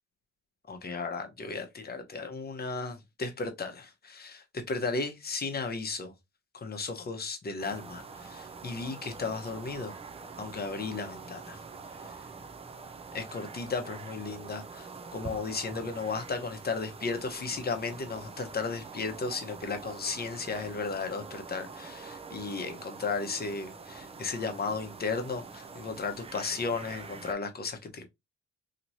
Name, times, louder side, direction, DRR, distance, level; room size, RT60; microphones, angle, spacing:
voice 1, 0.7-6.1 6.5-10.0 10.4-11.6 12.1-12.2 13.1-28.0, left 4 dB, 30° left, 0.9 m, -35 dB
sound 1, 7.6-27.3, right 4 dB, 20° right, 0.4 m, -45 dB
2.9 x 2.9 x 2.6 m
cardioid pair, 90°, 30 cm